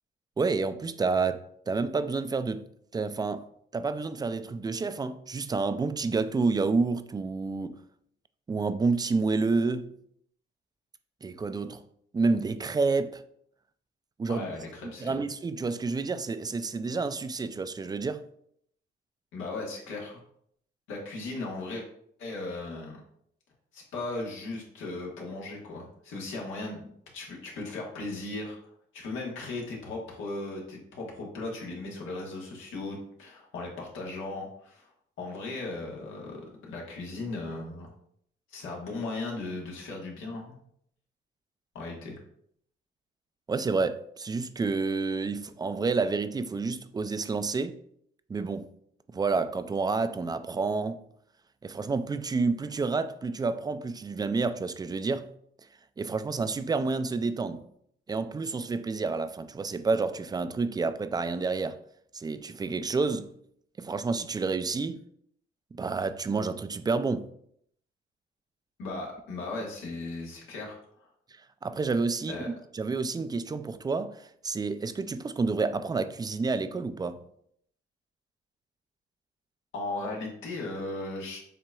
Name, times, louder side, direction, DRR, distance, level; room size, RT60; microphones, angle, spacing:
voice 1, 0.4-2.7 2.9-3.5 3.7-7.8 8.5-9.9 11.2-11.8 12.1-13.2 14.2-14.5 14.8-18.2 43.5-47.8 48.3-48.7 49.1-51.0 51.6-55.3 56.0-57.6 58.1-61.8 62.1-63.3 63.8-65.0 65.7-67.3 71.6-72.4 72.7-77.2, right 4 dB, 20° right, 0.3 m, -29 dB
voice 2, 14.3-15.2 19.3-20.2 20.9-21.8 22.2-23.0 23.7-26.9 27.1-28.6 28.9-34.9 35.2-37.9 38.5-40.5 41.7-42.1 68.8-71.1 72.3-72.5 79.7-81.4, left 2 dB, 85° left, 1.5 m, -37 dB
7.4 x 2.8 x 2.3 m
cardioid pair, 90°, 20 cm